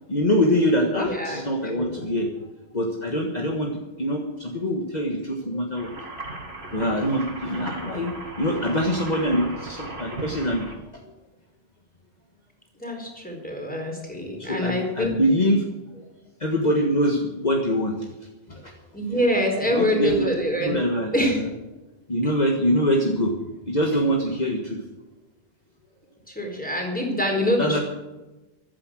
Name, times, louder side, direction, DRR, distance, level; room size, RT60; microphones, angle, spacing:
voice 1, 0.1-2.3 2.7-3.7 4.0-5.9 6.7-10.7 14.4-15.6 16.4-17.9 18.5-18.6 19.7-20.3 20.6-21.5 22.1-23.3 23.7-24.8 27.6-27.8, equal, 45° left, 1 dB, 1.7 m, -24 dB
voice 2, 0.9-2.0 12.8-15.2 18.9-20.8 21.1-21.4 26.3-27.8, left 1 dB, 10° left, 1 dB, 4.5 m, -25 dB
sound 1, 5.8-10.8, right 1 dB, 85° right, 2.6 m, -36 dB
15.0 x 12.0 x 6.3 m, 1.1 s
omnidirectional pair, 1.0 m